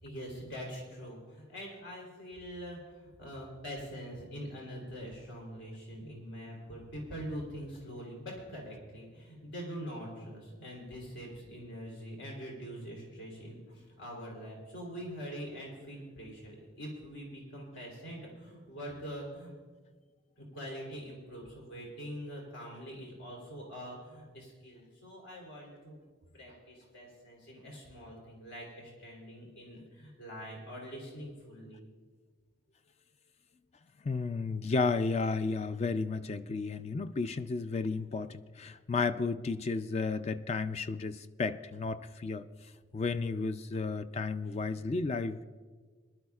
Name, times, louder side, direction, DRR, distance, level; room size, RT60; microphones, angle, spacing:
voice 1, 0.0-19.5 20.4-26.0 26.3-31.8, equal, 75° left, -1 dB, 3.4 m, -44 dB
voice 2, 34.0-42.4 42.9-45.4, left 4 dB, 35° left, 12 dB, 0.3 m, -33 dB
23.0 x 12.0 x 2.4 m, 1.5 s
head